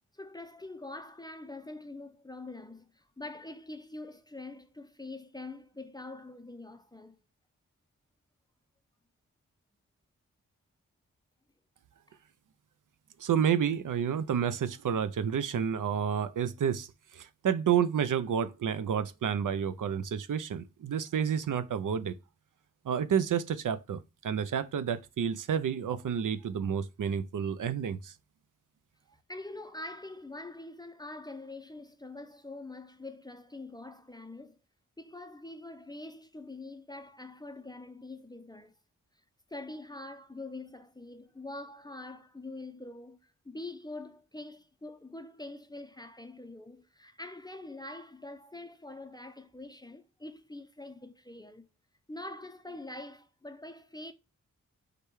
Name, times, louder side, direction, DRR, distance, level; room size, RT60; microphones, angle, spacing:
voice 1, 0.1-7.2 29.3-34.6 35.0-38.8 39.5-51.7 52.1-54.1, left 2 dB, 15° left, 0.4 m, -44 dB
voice 2, 13.2-22.1 22.8-28.1, right 8 dB, 70° right, 0.5 m, -30 dB
4.9 x 2.2 x 4.5 m
wide cardioid pair, 80°, 33 cm